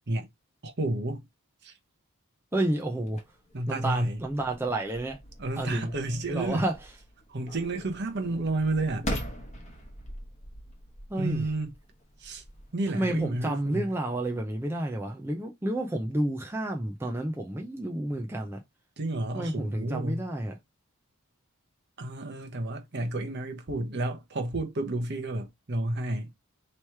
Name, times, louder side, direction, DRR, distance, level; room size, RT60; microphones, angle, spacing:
voice 1, 0.6-1.2 1.6-1.7 3.5-4.2 5.4-6.7 7.3-9.1 11.2-11.7 12.2-12.4 12.7-13.9 19.0-20.2 22.0-26.3, right 2 dB, 50° right, 0.9 m, -31 dB
voice 2, 2.5-3.2 3.7-5.2 5.6-5.9 6.3-6.8 11.1-11.5 12.9-18.6 19.3-20.6, right 1 dB, 10° right, 0.5 m, -30 dB
sound 1, 3.0-14.0, equal, 30° left, 1.2 m, -42 dB
3.2 x 3.0 x 4.5 m
head